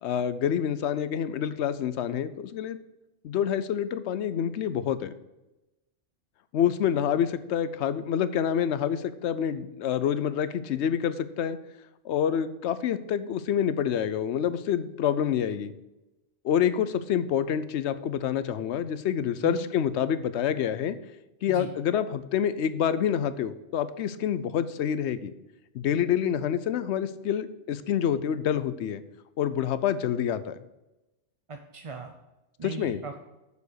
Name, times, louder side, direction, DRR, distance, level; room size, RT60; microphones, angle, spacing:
voice 1, 0.0-2.8 3.2-5.1 6.5-11.6 12.0-15.7 16.4-21.0 21.4-25.3 25.7-29.0 29.4-30.6 32.6-33.0, left 9 dB, 70° left, 14 dB, 0.9 m, -27 dB
voice 2, 31.5-32.1 32.6-33.2, right 4 dB, 40° right, 4 dB, 0.5 m, -38 dB
7.1 x 6.8 x 6.5 m, 0.99 s
omnidirectional pair, 1.2 m